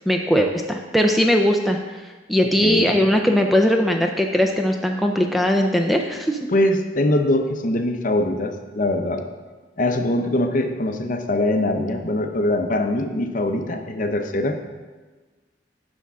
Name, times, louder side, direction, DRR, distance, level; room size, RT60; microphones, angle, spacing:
voice 1, 0.1-6.5, equal, ahead, 3 dB, 0.4 m, -20 dB
voice 2, 2.6-2.9 6.5-9.2 9.8-14.6, left 1 dB, 45° left, 5 dB, 0.7 m, -22 dB
9.8 x 3.5 x 6.2 m, 1.3 s
head